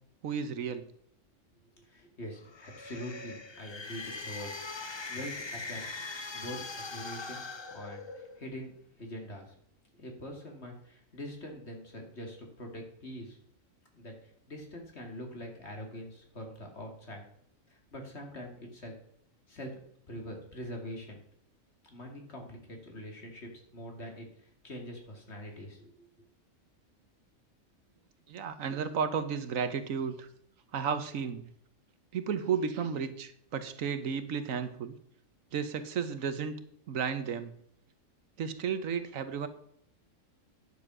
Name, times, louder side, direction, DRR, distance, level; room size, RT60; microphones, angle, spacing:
voice 1, 0.2-0.8 28.3-30.3 30.7-31.4 32.1-34.9 35.5-36.6 36.9-37.5 38.4-39.5, right 6 dB, 80° right, 11 dB, 1.3 m, -33 dB
voice 2, 1.8-6.0 6.3-7.4 7.7-8.7 9.0-9.5 9.9-13.4 13.9-17.2 17.7-18.9 19.5-19.8 20.1-21.2 21.8-26.1, equal, 55° left, 2 dB, 2.6 m, -44 dB
sound 1, 2.4-8.5, left 3 dB, 25° left, 0.6 m, -41 dB
9.9 x 7.3 x 6.1 m, 0.67 s
omnidirectional pair, 1.4 m